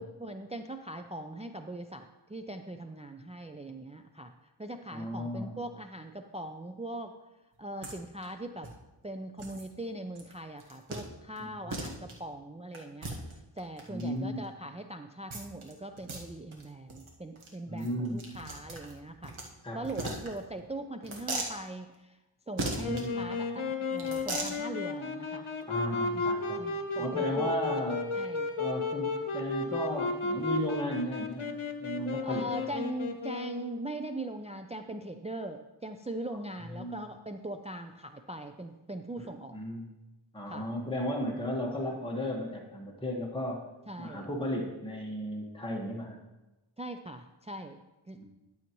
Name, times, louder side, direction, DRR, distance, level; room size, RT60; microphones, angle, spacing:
voice 1, 0.0-4.3 4.6-7.1 7.6-8.7 9.0-13.1 13.6-19.3 19.7-22.2 22.5-25.5 26.6-27.6 28.1-28.5 32.2-39.6 40.5-40.7 43.9-44.3 46.8-48.2, right 1 dB, 15° right, 6 dB, 0.4 m, -41 dB
voice 2, 4.9-5.5 11.4-11.9 13.9-14.4 17.7-18.3 19.6-20.1 22.7-23.2 25.7-26.6 27.0-28.2 28.6-31.5 31.8-32.7 36.7-37.0 39.2-39.8 40.3-43.7 44.0-46.2 48.1-48.2, equal, 10° left, -2 dB, 1.5 m, -35 dB
sound 1, 7.8-7.9 8.2-8.3 8.6-8.7 9.4-9.7 10.1-10.3 10.6-11.0 11.4-11.5 11.7-12.1 12.7-14.0 15.3-15.7 16.0-16.2 16.5-16.6 16.9-17.1 17.4-17.5 17.8-19.5 19.8-20.6 21.0-21.5 22.6-23.0 23.9-24.6, right 2 dB, 80° right, 1.5 m, -37 dB
Wind instrument woodwind instrument, 22.8-33.9, left 3 dB, 80° left, 0.9 m, -34 dB
12.0 x 7.2 x 3.1 m, 1.0 s
wide cardioid pair, 50°, 48 cm